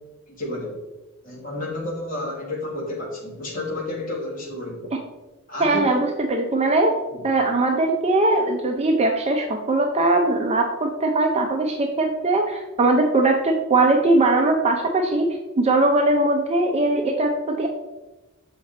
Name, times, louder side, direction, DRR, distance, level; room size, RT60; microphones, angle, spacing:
voice 1, 0.4-0.8 1.2-4.9 5.5-6.0 7.1-7.2, left 1 dB, 40° left, -5 dB, 1.8 m, -31 dB
voice 2, 5.6-6.9 7.2-17.7, right 2 dB, 30° right, 2 dB, 0.5 m, -20 dB
7.0 x 5.0 x 3.9 m, 1.1 s
head